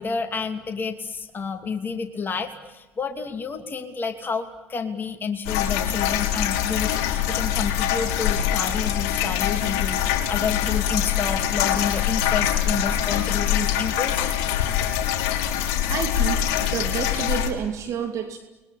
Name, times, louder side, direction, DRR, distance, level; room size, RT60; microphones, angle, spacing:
voice 1, 0.0-6.9 7.3-14.3, left 5 dB, 30° left, 5 dB, 3.0 m, -30 dB
sound 1, 5.5-17.5, left 10 dB, 70° left, 3.5 m, -24 dB
voice 2, 15.9-18.4, right 8 dB, 55° right, 7 dB, 2.3 m, -29 dB
29.5 x 21.0 x 8.6 m, 1.1 s
hypercardioid pair, 65°, 7 cm